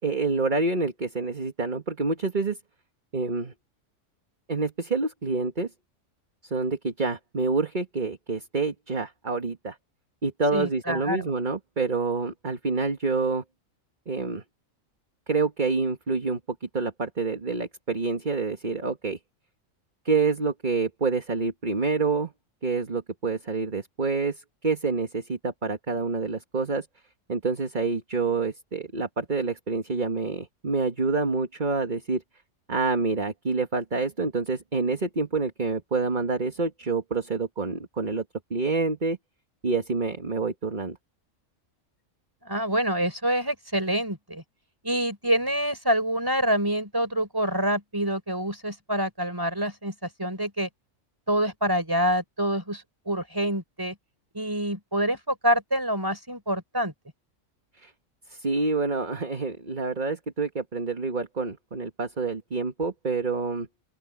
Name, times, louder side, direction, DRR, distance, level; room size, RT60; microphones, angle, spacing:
voice 1, 0.0-2.6 3.1-3.5 4.5-5.7 6.4-9.8 10.2-13.4 14.1-14.4 15.3-19.2 20.0-22.3 22.6-26.9 27.3-32.2 32.7-38.2 38.5-39.2 39.6-41.0 57.8-57.9 58.3-63.7, right 4 dB, 35° right, 1.8 m, -27 dB
voice 2, 10.5-11.2 42.4-44.4 44.8-50.7 51.3-54.0 54.3-56.9, equal, 15° right, 5.4 m, -26 dB
open air
omnidirectional pair, 1.3 m